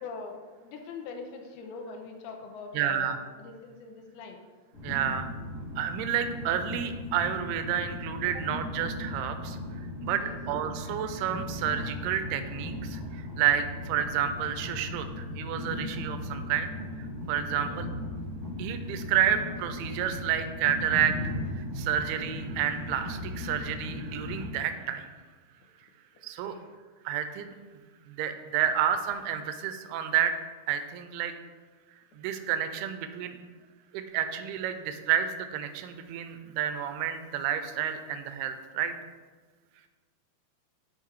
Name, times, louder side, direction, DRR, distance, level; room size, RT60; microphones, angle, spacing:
voice 1, 0.0-0.4 0.6-3.1 3.4-4.4 10.2-10.4 17.5-17.8 26.4-26.6, left 4 dB, 85° left, 3 dB, 2.6 m, -42 dB
voice 2, 2.7-3.2 4.8-5.3 5.8-9.6 10.0-17.9 18.6-25.1 26.2-26.6 27.1-27.5 28.1-30.3 30.7-31.3 32.1-33.4 33.9-38.9, right 9 dB, 90° right, 9 dB, 2.5 m, -30 dB
Train, 4.7-24.5, left 1 dB, 25° left, 1.8 m, -37 dB
6.2 x 5.7 x 4.6 m, 1.4 s
omnidirectional pair, 4.5 m